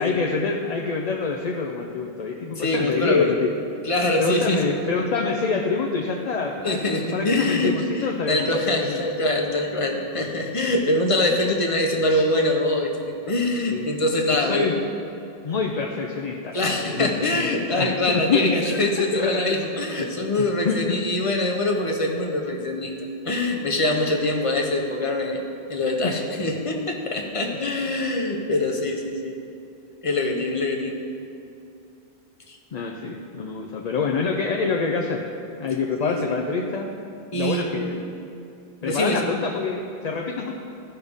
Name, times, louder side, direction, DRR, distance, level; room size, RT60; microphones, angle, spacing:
voice 1, 0.0-3.5 4.2-9.0 12.1-12.2 13.7-14.8 15.4-18.8 19.1-19.4 20.0-20.1 20.4-20.9 21.2-21.4 26.0-26.2 27.5-28.0 32.7-35.3 35.6-37.0 37.3-38.0 38.8-40.6, left 4 dB, 50° left, 0 dB, 0.6 m, -27 dB
voice 2, 2.6-3.3 3.8-4.7 6.6-14.7 16.5-22.9 23.2-25.4 25.7-29.4 30.0-31.0 32.5-32.6 36.0-36.4 37.3-38.1 38.8-39.3, left 2 dB, 35° left, 1 dB, 0.9 m, -24 dB
14.0 x 5.6 x 3.6 m, 2.6 s
omnidirectional pair, 1.0 m